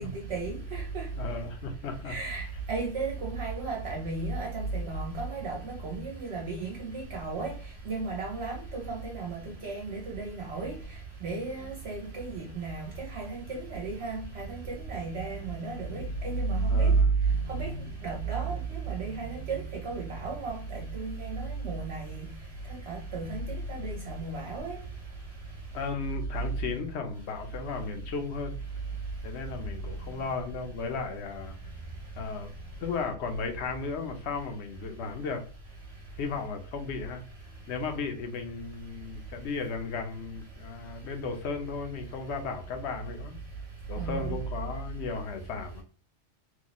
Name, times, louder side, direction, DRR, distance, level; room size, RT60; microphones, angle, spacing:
voice 1, 0.0-1.1 2.1-7.5 7.9-10.7 11.2-16.9 17.5-22.3 22.7-24.8 44.0-44.3, right 3 dB, 65° right, 1.0 m, -33 dB
voice 2, 1.2-2.1 11.6-11.7 16.7-17.1 25.7-28.6 29.2-31.5 32.2-32.5 32.8-35.4 36.2-37.2 37.7-43.4 43.9-45.8, left 4 dB, 70° left, 0.9 m, -35 dB
3.0 x 2.2 x 3.9 m
omnidirectional pair, 1.2 m